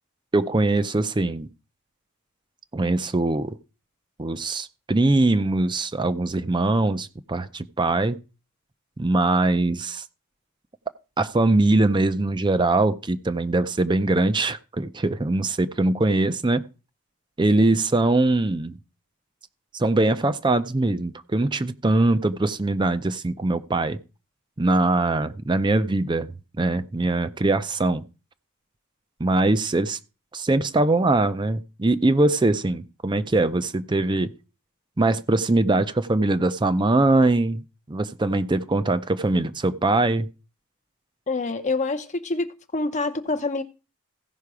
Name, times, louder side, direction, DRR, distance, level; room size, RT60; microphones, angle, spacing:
voice 1, 0.3-1.5 2.7-3.5 4.2-8.2 9.0-10.0 11.2-16.6 17.4-18.8 19.7-24.0 24.6-26.3 26.6-28.0 29.2-30.0 30.3-34.3 35.0-40.3, right 2 dB, 20° right, 0.5 m, -22 dB
voice 2, 41.3-42.5 42.7-43.6, left 3 dB, 30° left, 0.6 m, -26 dB
15.5 x 5.7 x 4.8 m
head